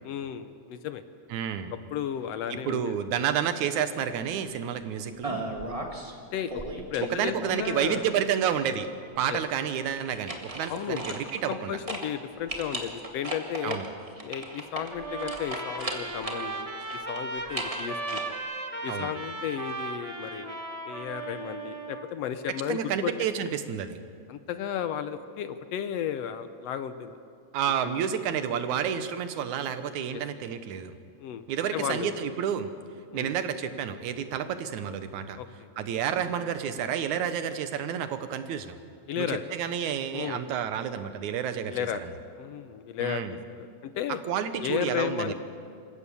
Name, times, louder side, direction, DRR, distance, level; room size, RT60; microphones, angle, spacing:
voice 1, 0.0-1.0 1.9-3.0 6.3-6.6 6.9-8.1 9.3-9.4 10.7-11.0 11.5-13.8 14.2-16.7 17.1-18.2 18.8-20.6 20.9-23.1 24.3-27.1 27.8-27.9 30.1-30.2 31.2-31.5 31.7-32.2 33.1-33.3 35.4-35.7 39.1-39.4 40.1-40.4 41.7-42.0 42.4-44.2 44.6-45.3, left 9 dB, 70° left, 11 dB, 1.7 m, -33 dB
voice 2, 1.3-1.7 2.5-5.5 7.0-8.9 9.2-11.7 13.6-13.9 18.9-19.1 22.7-24.0 27.5-30.9 31.5-32.7 33.1-35.4 35.8-38.8 39.2-41.8 43.0-43.4 44.2-45.3, right 8 dB, 85° right, 10 dB, 2.5 m, -30 dB
sound 1, 5.2-6.1 6.5-7.8 10.0-11.6 11.9-12.1 12.5-16.5 16.8-18.2, right 1 dB, 15° right, 1.4 m, -36 dB
Trumpet, 14.9-22.1, right 2 dB, 40° right, 0.5 m, -36 dB
26.5 x 15.5 x 7.0 m, 2.4 s
omnidirectional pair, 3.3 m